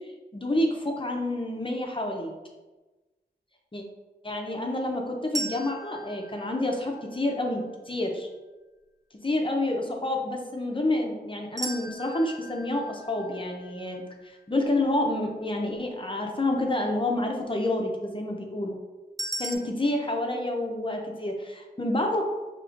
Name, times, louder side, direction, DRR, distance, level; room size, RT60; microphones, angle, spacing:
voice 1, 0.3-2.3 3.7-3.8 4.2-8.3 9.2-18.8 19.4-22.2, left 1 dB, 30° left, 1 dB, 0.5 m, -28 dB
sound 1, 5.3-7.4 11.6-14.7 19.2-19.5, right 2 dB, 20° right, 0.4 m, -38 dB
4.8 x 2.9 x 2.5 m, 1.2 s
wide cardioid pair, 70°, 17 cm